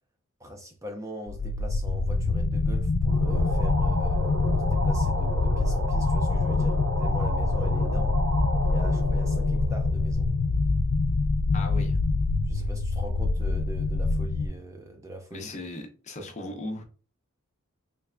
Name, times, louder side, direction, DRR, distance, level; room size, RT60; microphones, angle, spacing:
voice 1, 0.4-8.2 8.7-10.3 12.5-15.5, right 1 dB, 15° right, 0.4 m, -42 dB
sound 1, 1.3-14.5, left 3 dB, 85° left, 0.4 m, -25 dB
sound 2, 3.1-10.4, equal, 65° right, 0.7 m, -34 dB
voice 2, 11.5-12.0 15.3-16.8, left 1 dB, 30° left, 0.6 m, -37 dB
3.3 x 3.2 x 2.4 m
head